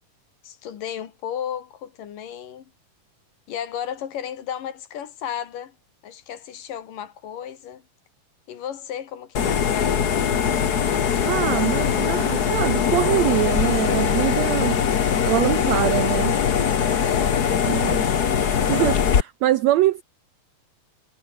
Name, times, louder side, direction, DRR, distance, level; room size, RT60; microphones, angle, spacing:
voice 1, 0.4-2.7 3.5-5.8 6.0-7.8 8.5-10.1 16.8-18.1, left 9 dB, 75° left, 3.7 m, -34 dB
sound 1, 9.3-19.2, left 7 dB, 55° left, 1.0 m, -21 dB
voice 2, 11.2-14.8 15.3-16.4 17.7-18.0 18.7-20.0, right 15 dB, 85° right, 1.6 m, -23 dB
omnidirectional pair, 3.9 m